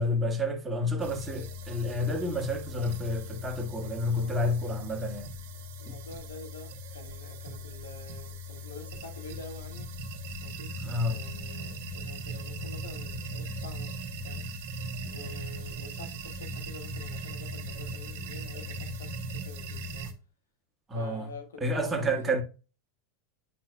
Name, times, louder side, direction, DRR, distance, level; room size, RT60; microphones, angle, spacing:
voice 1, 0.0-5.3 5.9-6.0 10.8-11.3 20.9-21.3 21.6-22.4, left 1 dB, 15° right, 1.6 m, -30 dB
sound 1, 1.0-20.1, right 1 dB, 60° right, 1.3 m, -39 dB
voice 2, 4.0-4.3 5.8-9.9 10.4-10.7 11.1-14.5 15.0-20.1 20.9-22.4, left 2 dB, 75° left, 1.4 m, -47 dB
8.1 x 5.4 x 2.3 m
figure-of-eight pair, 85°, 0 cm